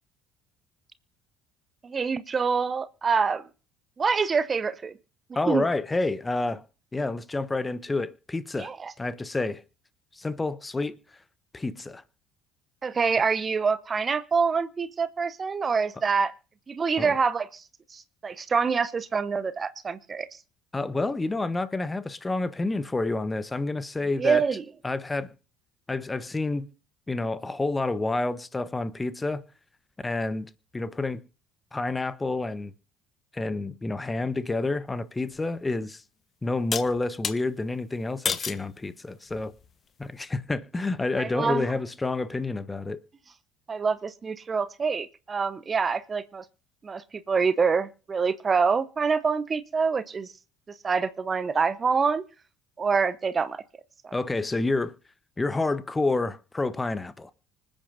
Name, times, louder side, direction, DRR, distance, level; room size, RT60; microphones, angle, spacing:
voice 1, 1.8-3.4 4.0-4.9 5.5-5.6 8.6-8.9 12.8-16.3 16.7-17.6 17.9-20.3 24.2-24.6 41.2-41.6 43.7-46.4 46.8-50.3 50.8-52.2 52.8-53.6 54.0-54.1, right 5 dB, 30° right, 0.9 m, -26 dB
voice 2, 5.3-6.6 6.9-8.7 9.0-9.6 10.1-11.2 11.5-12.0 17.0-17.2 20.7-24.4 24.8-25.3 25.9-26.7 27.1-29.4 30.0-31.2 31.7-32.7 33.3-36.0 36.4-39.5 40.0-43.0 54.1-54.9 55.4-57.3, left 2 dB, 15° left, 1.1 m, -29 dB
sound 1, 35.3-35.4 36.7-37.4 38.3-38.7 39.3-39.7, left 6 dB, 35° left, 1.2 m, -30 dB
26.0 x 9.0 x 2.7 m
figure-of-eight pair, 55°, 0 cm